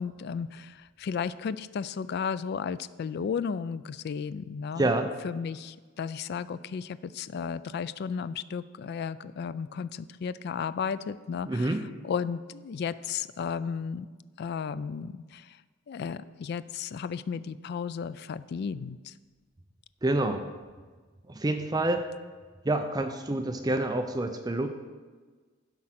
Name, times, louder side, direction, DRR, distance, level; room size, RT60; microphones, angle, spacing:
voice 1, 0.0-14.1 14.4-15.6 15.9-19.1, left 6 dB, 50° left, 15 dB, 0.3 m, -34 dB
voice 2, 4.7-5.1 11.5-11.8 20.0-20.4 21.3-22.0 22.6-24.7, right 2 dB, 20° right, 7 dB, 0.5 m, -27 dB
12.0 x 4.9 x 5.8 m, 1.4 s
head